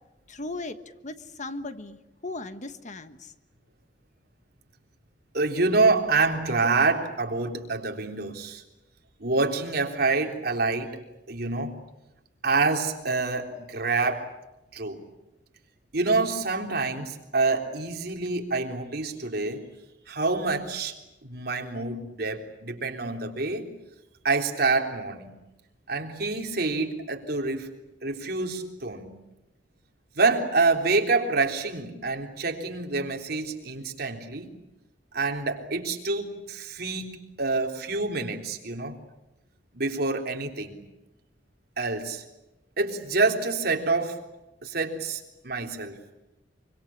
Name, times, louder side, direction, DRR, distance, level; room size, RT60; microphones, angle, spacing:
voice 1, 0.3-3.3, left 2 dB, 40° left, 10 dB, 1.4 m, -37 dB
voice 2, 5.3-8.6 9.2-11.0 11.3-11.8 12.4-14.3 14.7-15.0 15.9-19.6 20.1-21.0 21.2-23.7 24.2-25.3 25.9-27.7 28.0-29.2 30.2-34.5 35.1-39.0 39.7-40.8 41.8-42.2 42.8-44.2 44.6-46.0, right 3 dB, 60° right, 3 dB, 3.6 m, -27 dB
26.0 x 25.0 x 8.6 m, 0.95 s
head